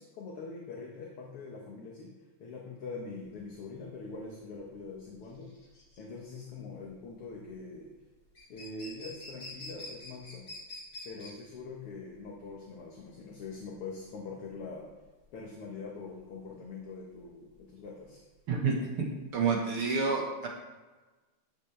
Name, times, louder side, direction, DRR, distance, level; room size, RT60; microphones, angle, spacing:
voice 1, 0.0-2.1 2.4-5.5 6.0-7.9 8.5-10.5 11.0-14.9 15.3-18.2, left 4 dB, 60° left, -1 dB, 1.9 m, -43 dB
sound 1, 3.2-19.5, left 1 dB, 30° left, 3.6 m, -49 dB
voice 2, 18.5-19.1 19.3-20.5, right 5 dB, 55° right, 0 dB, 1.9 m, -29 dB
13.5 x 7.6 x 3.3 m, 1.2 s
omnidirectional pair, 3.4 m